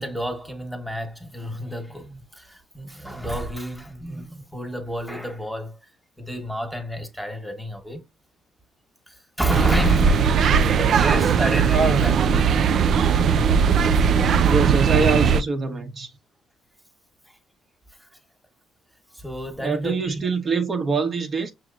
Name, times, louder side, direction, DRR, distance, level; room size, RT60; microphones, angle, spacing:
voice 1, 0.0-5.8 6.2-8.0 9.1-12.7 13.8-13.9 14.4-14.5 17.3-17.4 18.0-18.1 19.1-20.2, right 1 dB, ahead, 1.2 m, -29 dB
sound 1, 9.5-15.4, right 7 dB, 65° right, 0.3 m, -19 dB
voice 2, 10.4-10.9 11.7-12.0 14.4-16.1 19.6-21.5, right 4 dB, 45° right, 1.0 m, -24 dB
6.1 x 2.8 x 2.4 m
cardioid pair, 90°, 0 cm